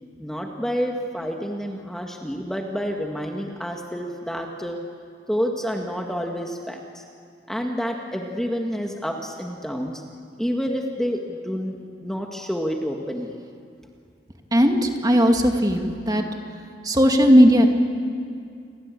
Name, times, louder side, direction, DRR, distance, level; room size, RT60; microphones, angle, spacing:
voice 1, 0.2-4.8 5.3-7.0 7.5-9.9 10.4-13.4, equal, 5° left, 1 dB, 1.7 m, -28 dB
voice 2, 14.5-16.2 16.8-17.7, equal, 20° right, 3 dB, 2.2 m, -17 dB
29.0 x 23.0 x 8.5 m, 2.3 s
head